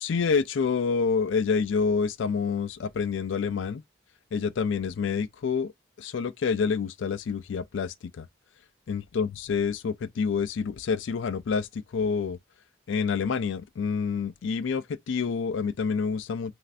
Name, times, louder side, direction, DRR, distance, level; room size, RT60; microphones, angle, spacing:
voice 1, 0.0-3.8 4.3-5.7 6.0-8.3 8.9-12.4 12.9-16.5, left 5 dB, 80° left, 0.4 m, -28 dB
3.2 x 2.5 x 2.4 m
head